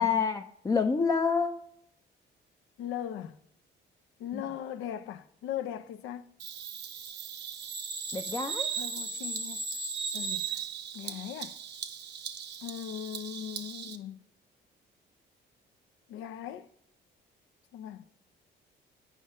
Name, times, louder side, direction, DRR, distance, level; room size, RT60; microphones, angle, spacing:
voice 1, 0.0-1.5 4.3-4.4 8.1-8.7, left 5 dB, 15° left, 0.3 m, -27 dB
voice 2, 2.8-3.4 4.2-6.3 8.8-9.6 10.1-10.6 10.9-11.6 12.6-14.2 16.1-16.7 17.7-18.1, left 10 dB, 90° left, 0.5 m, -39 dB
Bird vocalization bird call bird song, 6.4-14.0, right 6 dB, 60° right, 0.7 m, -37 dB
8.4 x 3.6 x 5.3 m
cardioid pair, 90°, 20 cm